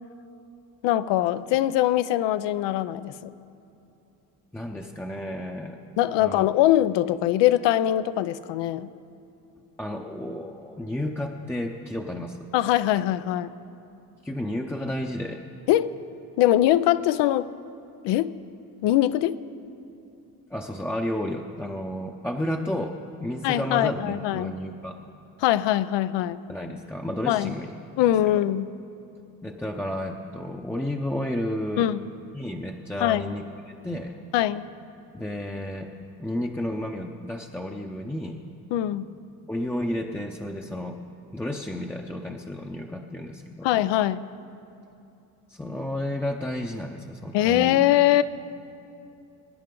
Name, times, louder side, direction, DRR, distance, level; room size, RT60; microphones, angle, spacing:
voice 1, 0.8-3.3 6.0-8.9 12.5-13.5 15.7-15.9 16.4-17.5 18.0-18.3 18.8-19.4 23.4-24.5 25.4-26.4 27.3-27.6 28.0-28.7 31.8-32.0 33.0-33.3 34.3-34.6 38.7-39.1 43.6-44.3 47.3-48.2, left 13 dB, 80° left, 15 dB, 0.6 m, -22 dB
voice 2, 4.5-5.8 6.2-6.4 9.8-12.5 14.2-15.4 20.5-25.0 26.5-27.7 28.0-28.4 29.4-31.9 32.3-34.2 35.1-35.9 36.2-38.4 39.5-41.0 41.3-43.7 45.5-47.8, left 1 dB, 5° left, 0 dB, 0.7 m, -32 dB
23.5 x 10.0 x 3.8 m, 2.8 s
cardioid pair, 95°, 42 cm